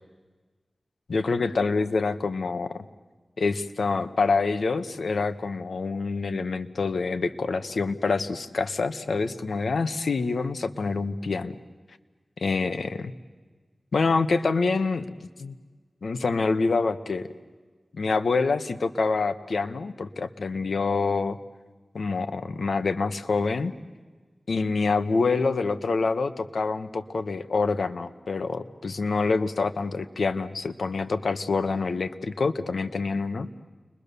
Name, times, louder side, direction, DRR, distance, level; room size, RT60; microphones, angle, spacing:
voice 1, 1.1-2.8 3.4-11.5 12.4-13.1 13.9-15.0 15.4-15.5 16.0-17.3 17.9-21.4 21.9-23.7 24.5-33.5, left 4 dB, 85° left, 11 dB, 1.1 m, -26 dB
29.5 x 22.5 x 6.9 m, 1.4 s
wide cardioid pair, 90°, 0 cm